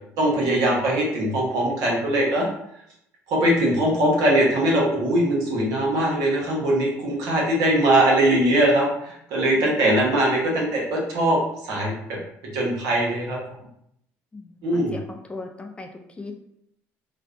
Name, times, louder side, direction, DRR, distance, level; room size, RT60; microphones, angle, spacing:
voice 1, 0.2-2.5 3.3-11.4 11.7-12.2 12.5-13.4 14.6-14.9, right 1 dB, 75° right, -3 dB, 0.9 m, -21 dB
voice 2, 14.3-15.9 16.2-16.3, left 3 dB, 20° left, 4 dB, 0.3 m, -37 dB
2.5 x 2.0 x 2.4 m, 0.75 s
supercardioid pair, 85°, 6 cm